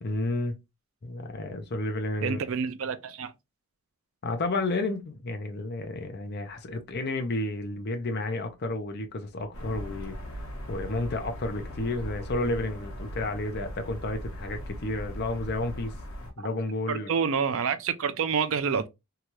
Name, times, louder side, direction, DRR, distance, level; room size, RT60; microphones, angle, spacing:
voice 1, 0.0-0.6 1.0-2.4 4.2-10.2 10.7-15.9 16.4-17.1, left 2 dB, 50° left, 0.6 m, -31 dB
voice 2, 2.2-3.3 16.4-16.5 16.9-18.9, right 6 dB, 65° right, 0.4 m, -28 dB
sound 1, 9.5-16.3, equal, 70° left, 1.0 m, -39 dB
2.8 x 2.3 x 3.0 m
head